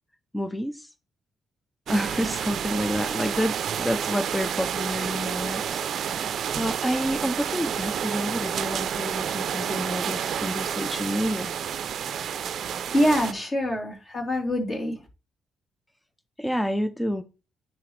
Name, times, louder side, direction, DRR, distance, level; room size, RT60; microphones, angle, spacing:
voice 1, 0.3-0.9 1.9-11.5 16.4-17.2, equal, 5° left, 0.5 m, -29 dB
sound 1, 1.9-13.3, right 8 dB, 65° right, 0.5 m, -30 dB
voice 2, 12.9-15.0, equal, 40° left, 3.4 m, -25 dB
9.7 x 4.2 x 3.2 m
cardioid pair, 90°, 0 cm